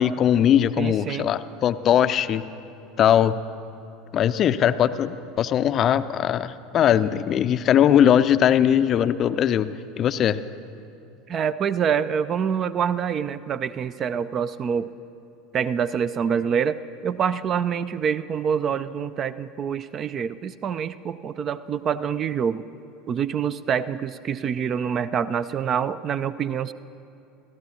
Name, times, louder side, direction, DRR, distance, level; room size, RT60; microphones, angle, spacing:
voice 1, 0.0-2.4 3.0-3.4 4.1-9.7 10.0-10.4, left 10 dB, 35° left, 13 dB, 0.5 m, -20 dB
voice 2, 0.8-1.3 11.3-14.9 15.5-22.6 23.1-26.7, right 7 dB, 35° right, 15 dB, 0.3 m, -26 dB
29.5 x 14.5 x 2.8 m, 2.8 s
figure-of-eight pair, 70°, 0 cm